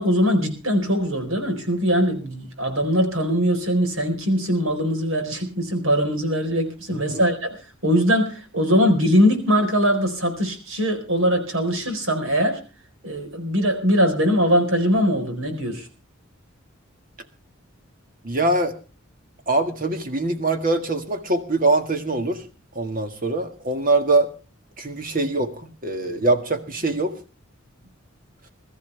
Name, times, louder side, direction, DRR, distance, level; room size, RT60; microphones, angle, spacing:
voice 1, 0.0-7.6 7.8-12.6 13.0-15.9, equal, 75° right, 6 dB, 4.2 m, -21 dB
voice 2, 18.2-18.8 19.5-22.4 22.7-24.3 24.8-27.1, right 2 dB, 40° right, 7 dB, 1.8 m, -23 dB
21.5 x 13.5 x 3.4 m, 0.34 s
head